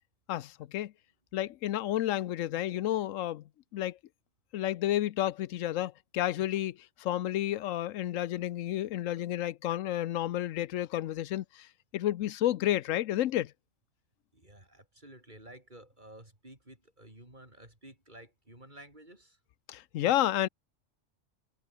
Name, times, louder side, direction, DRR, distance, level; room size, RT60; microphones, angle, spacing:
voice 1, 0.3-0.9 1.3-3.4 3.7-4.0 4.5-11.7 11.9-13.5 19.7-20.5, left 13 dB, 90° left, 1.0 m, -31 dB
voice 2, 14.3-19.4, right 1 dB, 35° right, 6.4 m, -52 dB
omnidirectional pair, 1.3 m